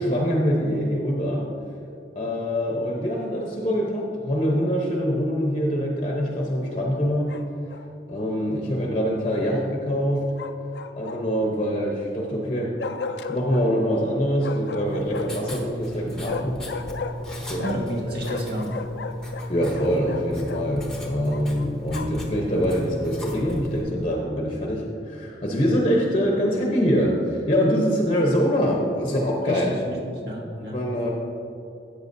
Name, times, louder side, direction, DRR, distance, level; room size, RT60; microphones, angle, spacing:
voice 1, 0.0-1.5 2.1-7.4 8.1-10.2 10.9-12.7 13.3-16.6 17.4-17.6 18.1-18.4 19.5-29.7 30.6-31.1, equal, 35° left, -2 dB, 0.9 m, -24 dB
Bark, 7.3-7.9 10.4-11.5 12.8-13.7 14.4-15.5 16.2-18.0 18.2-20.7 21.3-22.3, left 4 dB, 70° left, 0.5 m, -35 dB
Writing, 14.8-23.8, left 1 dB, 5° left, 1.1 m, -35 dB
voice 2, 17.6-18.7 29.5-30.0 30.2-30.8, equal, 60° right, -2 dB, 1.8 m, -30 dB
13.5 x 8.3 x 2.7 m, 2.7 s
head